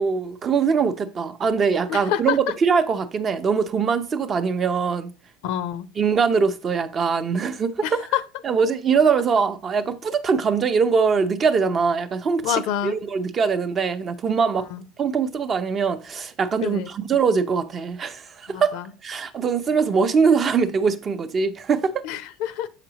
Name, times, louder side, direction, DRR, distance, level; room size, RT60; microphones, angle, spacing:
voice 1, 0.0-5.1 6.0-8.0 8.4-14.7 15.0-18.7 19.0-22.1, right 5 dB, 30° right, 0.6 m, -22 dB
voice 2, 1.9-2.4 5.4-5.9 7.8-8.2 12.4-13.0 14.7-14.8 16.6-16.9 18.5-18.9 22.0-22.7, left 11 dB, 75° left, 0.6 m, -27 dB
6.9 x 5.8 x 2.9 m
supercardioid pair, 120°, 0 cm